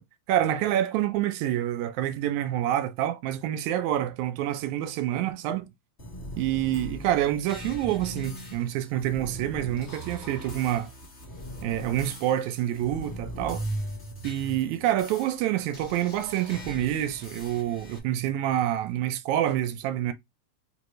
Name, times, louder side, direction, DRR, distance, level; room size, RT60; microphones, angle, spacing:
voice 1, 0.3-5.7 6.4-10.9 11.6-13.6 14.2-20.1, right 12 dB, 80° right, 1.9 m, -27 dB
sound 1, 6.0-18.0, equal, 35° left, 1.1 m, -39 dB
4.8 x 3.0 x 3.1 m
omnidirectional pair, 3.4 m